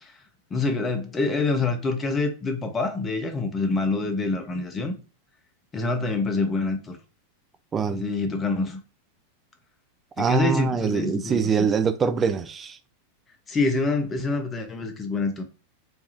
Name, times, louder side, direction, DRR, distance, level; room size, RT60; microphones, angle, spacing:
voice 1, 0.5-4.9 5.7-7.0 7.9-8.8 10.2-11.7 13.5-15.4, left 3 dB, 20° left, 0.9 m, -26 dB
voice 2, 7.7-8.0 10.2-12.8, right 6 dB, 20° right, 0.3 m, -24 dB
3.4 x 2.3 x 4.2 m
figure-of-eight pair, 90°, 0 cm